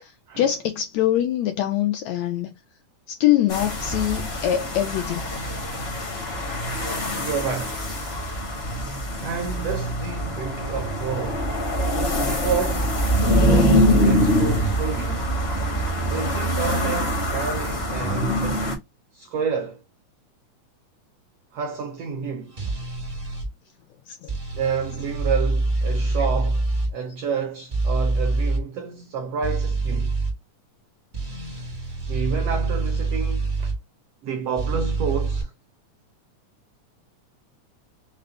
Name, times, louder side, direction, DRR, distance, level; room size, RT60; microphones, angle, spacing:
voice 1, 0.0-2.5 3.1-5.3 16.0-16.1 24.1-24.3 27.0-27.1, left 12 dB, 80° left, 1.6 m, -24 dB
sound 1, 3.5-18.7, equal, 55° left, 0.6 m, -24 dB
voice 2, 7.1-7.8 9.2-11.5 11.9-13.0 13.4-15.3 16.1-18.7 19.1-19.8 21.5-22.6 24.5-30.2 32.1-33.7 34.2-35.5, right 6 dB, 85° right, 1.4 m, -29 dB
sound 2, 22.6-23.5 24.3-26.9 27.7-28.6 29.4-30.3 31.1-33.8 34.6-35.4, right 3 dB, 65° right, 0.4 m, -25 dB
5.4 x 2.1 x 3.9 m
omnidirectional pair, 3.6 m